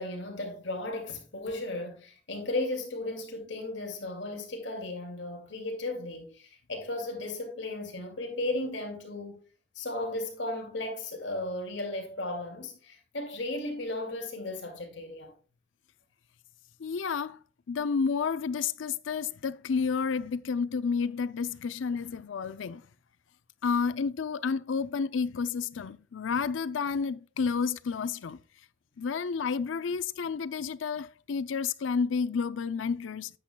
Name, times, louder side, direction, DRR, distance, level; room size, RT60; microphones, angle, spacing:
voice 1, 0.0-9.3 9.8-15.3 21.2-21.3, left 2 dB, 75° left, 2.5 m, -35 dB
voice 2, 16.8-17.4 17.7-22.8 23.6-28.4 29.0-33.3, left 5 dB, 90° left, 0.5 m, -30 dB
10.0 x 8.4 x 2.3 m
head